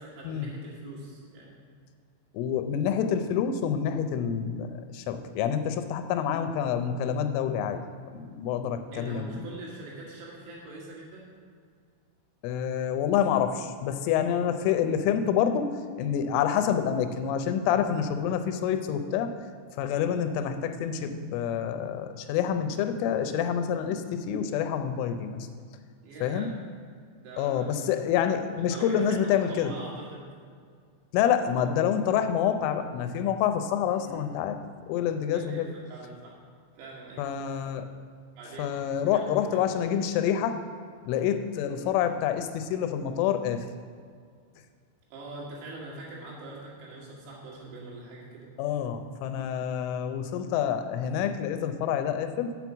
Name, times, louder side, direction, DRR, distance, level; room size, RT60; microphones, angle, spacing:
voice 1, 0.0-1.7 8.9-11.3 26.0-26.5 27.2-28.0 28.6-30.3 34.0-34.3 35.3-36.3 36.8-37.2 38.4-38.7 39.1-39.7 45.1-48.5, right 2 dB, 75° right, -5 dB, 4.4 m, -43 dB
voice 2, 2.3-7.8 8.2-9.5 12.4-15.7 16.0-19.3 19.8-25.5 26.2-26.5 27.4-29.7 31.1-34.6 34.9-35.7 37.2-37.9 38.6-40.6 41.1-43.7 48.6-52.6, left 8 dB, 90° left, 8 dB, 3.2 m, -27 dB
7.5 x 6.1 x 7.0 m, 2.1 s
omnidirectional pair, 5.5 m